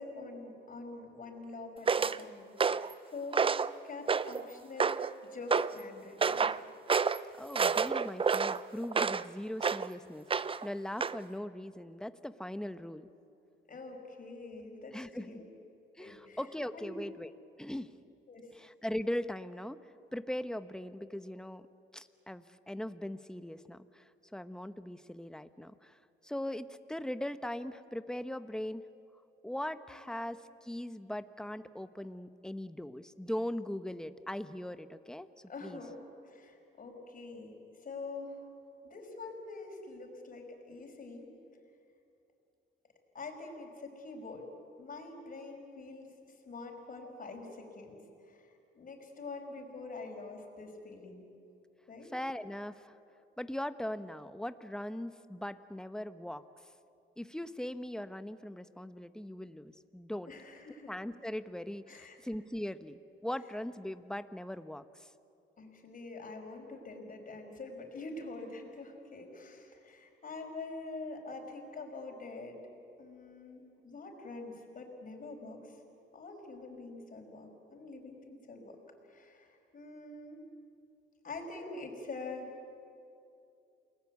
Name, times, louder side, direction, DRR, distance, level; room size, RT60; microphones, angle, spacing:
voice 1, 0.0-2.5 2.8-3.6 3.8-6.6 13.7-15.4 16.0-17.1 18.3-18.5 29.9-30.2 35.5-37.5 37.8-38.5 38.8-41.3 43.1-44.5 44.8-51.3 51.9-52.1 60.3-61.0 61.9-62.2 63.3-63.5 65.6-72.6 73.0-78.8 79.1-80.4 81.2-82.5, left 3 dB, 45° left, 2 dB, 5.5 m, -45 dB
sound 1, 1.9-2.2 2.6-2.9 3.3-3.7 4.1-4.4 4.8-5.1 5.5-5.7 6.2-6.6 6.9-7.2 7.5-9.2 9.6-9.9 10.3-10.7 11.0-11.2, right 5 dB, 25° right, 0.6 m, -29 dB
voice 2, 7.4-13.1 14.9-15.4 16.0-17.3 17.6-17.9 18.5-19.8 20.1-21.6 21.9-28.9 29.4-35.3 35.6-35.8 52.1-52.9 53.4-56.4 57.2-60.3 60.9-65.1, left 1 dB, 5° left, 11 dB, 1.0 m, -40 dB
29.0 x 21.0 x 8.4 m, 2.6 s
cardioid pair, 90°, 20 cm